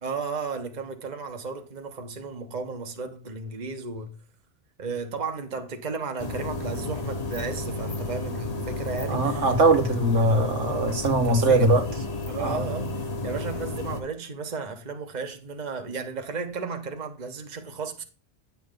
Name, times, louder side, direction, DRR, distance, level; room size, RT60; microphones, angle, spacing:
voice 1, 0.0-4.1 4.8-9.5 11.1-11.7 12.3-18.0, right 4 dB, 40° right, 1.3 m, -34 dB
sound 1, 6.2-14.0, left 2 dB, 35° left, 1.3 m, -32 dB
voice 2, 9.1-11.8 12.4-12.6, right 2 dB, 85° right, 1.8 m, -21 dB
10.0 x 7.3 x 3.8 m
omnidirectional pair, 1.2 m